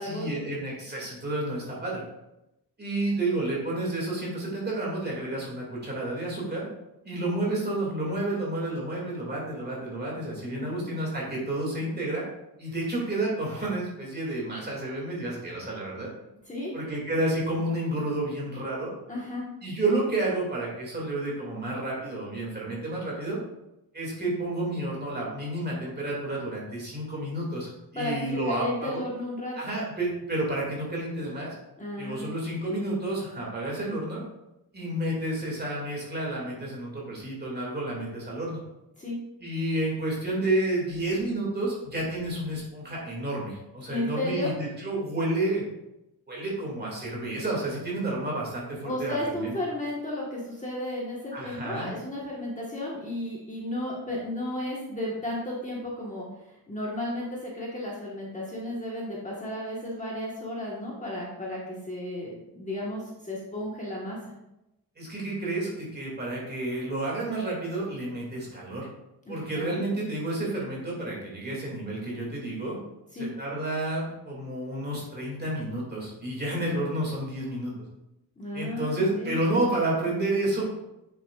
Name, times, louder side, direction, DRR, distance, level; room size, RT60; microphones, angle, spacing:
voice 1, 0.0-2.0 2.8-6.7 7.0-12.3 12.6-16.1 16.7-18.9 19.6-23.4 23.9-29.0 29.6-31.5 32.0-34.2 34.7-38.6 39.4-45.6 46.3-49.5 51.3-51.9 65.0-68.9 69.3-72.8 73.2-77.7 78.5-80.6, right 1 dB, 25° right, -4 dB, 2.3 m, -30 dB
voice 2, 19.1-19.4 27.9-28.1 28.4-29.6 31.8-32.3 39.0-39.2 43.9-44.5 48.8-56.3 56.7-64.2 69.3-69.8 73.1-73.3 78.4-79.4, left 1 dB, 20° left, -4 dB, 1.4 m, -33 dB
8.4 x 7.0 x 2.4 m, 0.91 s
wide cardioid pair, 160°, 38 cm